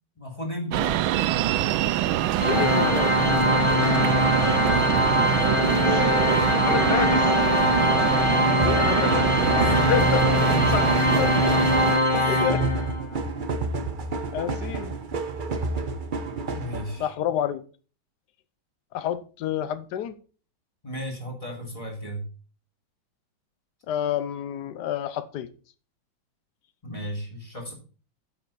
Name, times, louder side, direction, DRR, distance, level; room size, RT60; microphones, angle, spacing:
voice 1, 0.2-1.0 3.6-5.5 7.5-7.9 9.6-9.9 10.4-10.8 12.1-12.5 16.5-17.1 20.8-22.2 26.8-27.7, equal, 15° left, 3.3 m, -34 dB
sound 1, 0.7-12.0, right 13 dB, 80° right, 1.4 m, -24 dB
voice 2, 2.4-3.2 6.6-7.2 8.6-10.2 10.7-10.8 11.2-11.3 12.3-12.6 14.3-15.0 17.0-17.6 18.9-20.1 23.9-25.5, left 10 dB, 60° left, 1.4 m, -29 dB
Organ, 2.4-13.2, left 2 dB, 30° left, 0.5 m, -22 dB
sound 2, 8.6-17.0, right 3 dB, 45° right, 0.6 m, -30 dB
8.8 x 7.7 x 4.2 m
omnidirectional pair, 2.2 m